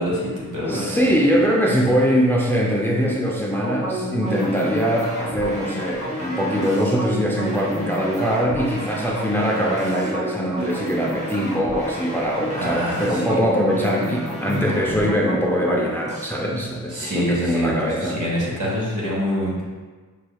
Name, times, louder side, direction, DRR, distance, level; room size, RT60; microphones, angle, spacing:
voice 1, 0.0-1.1 12.6-13.4 16.9-19.6, equal, 65° right, -4 dB, 1.4 m, -25 dB
voice 2, 0.6-18.2, equal, 5° left, -2 dB, 0.5 m, -22 dB
sound 1, 3.6-16.3, right 1 dB, 20° right, 0.9 m, -30 dB
5.5 x 3.3 x 2.3 m, 1.4 s
wide cardioid pair, 80°, 33 cm